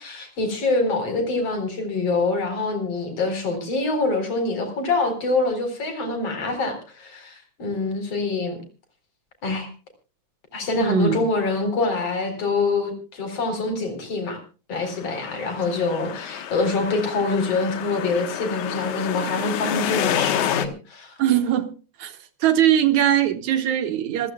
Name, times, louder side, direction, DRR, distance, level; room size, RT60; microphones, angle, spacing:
voice 1, 0.0-8.6 9.4-9.7 10.5-14.4 14.7-21.1, left 3 dB, 55° left, 8 dB, 5.0 m, -25 dB
voice 2, 10.8-11.2 21.2-21.7 22.0-24.3, right 10 dB, 80° right, 9 dB, 2.9 m, -20 dB
sound 1, 14.8-20.7, left 10 dB, 85° left, 2.7 m, -29 dB
26.0 x 15.0 x 2.3 m, 0.34 s
omnidirectional pair, 3.3 m